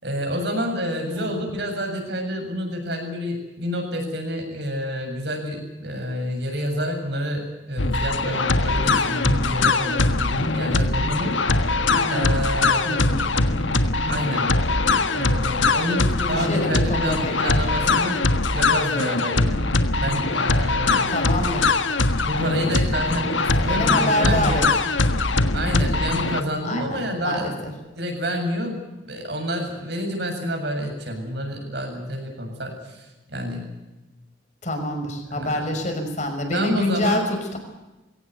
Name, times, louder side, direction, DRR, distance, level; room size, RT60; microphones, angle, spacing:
voice 1, 0.0-11.3 12.1-13.2 14.1-14.5 15.1-18.2 18.5-19.6 20.0-21.1 22.2-24.7 25.5-27.5 28.0-28.8 29.0-33.6 35.3-35.5 36.5-37.3, equal, 60° right, 3 dB, 7.5 m, -28 dB
voice 2, 1.0-1.4 11.9-12.3 12.8-13.3 16.2-17.7 21.1-21.8 23.6-24.7 26.6-27.5 34.6-37.6, left 1 dB, 40° left, 5 dB, 5.8 m, -26 dB
sound 1, 7.8-26.4, left 3 dB, 75° left, 1.5 m, -22 dB
22.5 x 17.5 x 9.4 m, 1.1 s
head